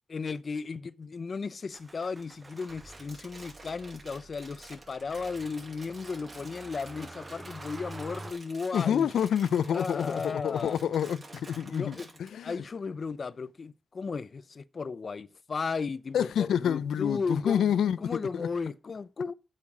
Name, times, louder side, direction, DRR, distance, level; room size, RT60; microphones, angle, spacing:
voice 1, 0.1-9.1 9.7-10.8 11.7-12.1 12.4-19.3, left 4 dB, 50° left, 0.6 m, -35 dB
Motor vehicle (road), 1.7-8.3, right 2 dB, 25° right, 0.8 m, -48 dB
Crumpling crinkling, 2.2-12.3, right 2 dB, 40° right, 4.8 m, -50 dB
voice 2, 8.7-12.6 16.1-18.5, left 9 dB, 90° left, 0.5 m, -28 dB
8.6 x 6.7 x 6.1 m
cardioid pair, 80°, 0 cm